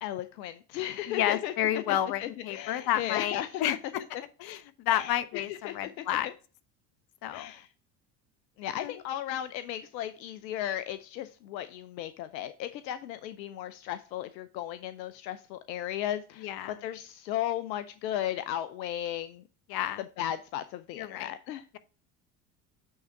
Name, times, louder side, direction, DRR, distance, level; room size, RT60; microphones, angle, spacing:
voice 1, 0.0-3.8 4.9-5.1 5.5-6.1 7.3-7.7 8.6-19.4 20.2-21.6, left 12 dB, 80° left, 13 dB, 0.7 m, -35 dB
voice 2, 1.1-4.0 4.4-6.3 7.2-7.5 8.8-9.0 16.4-16.7 19.7-20.0 21.0-21.3, left 12 dB, 45° left, 14 dB, 0.9 m, -30 dB
8.7 x 3.6 x 4.4 m, 0.36 s
hypercardioid pair, 75°, 50 cm